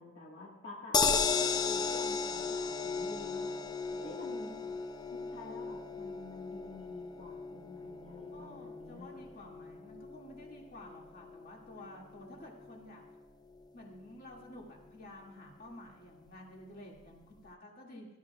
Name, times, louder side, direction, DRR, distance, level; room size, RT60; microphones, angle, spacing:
voice 1, 0.0-3.6 4.0-4.6 5.1-9.3, left 2 dB, 65° left, -4 dB, 1.8 m, -49 dB
sound 1, 0.9-13.2 13.6-13.7 13.9-14.0, left 5 dB, 20° left, 0.4 m, -36 dB
voice 2, 3.9-4.7 8.3-13.0 13.7-18.1, left 1 dB, 50° left, -1 dB, 2.3 m, -51 dB
18.5 x 13.0 x 2.4 m, 0.98 s
head